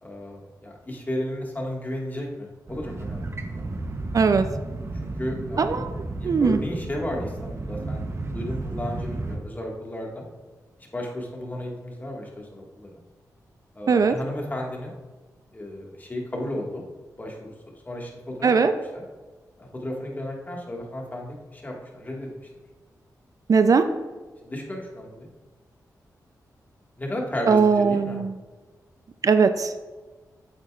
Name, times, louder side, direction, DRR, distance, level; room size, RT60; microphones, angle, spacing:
voice 1, 0.0-3.6 5.0-8.0 8.3-10.2 10.9-12.9 13.8-14.9 15.5-16.8 17.2-17.5 17.9-18.5 18.9-19.0 19.7-22.3 24.4-25.3 27.0-28.2, left 1 dB, 25° left, -1 dB, 1.9 m, -33 dB
sound 1, 2.7-9.4, right 2 dB, 40° right, 0.9 m, -33 dB
voice 2, 4.1-4.4 5.6-5.9 6.2-6.6 13.9-14.1 18.4-18.7 23.5-23.9 27.5-28.3 29.2-29.7, right 5 dB, 55° right, 9 dB, 0.5 m, -19 dB
8.3 x 8.1 x 2.5 m, 1.3 s
cardioid pair, 70°, 7 cm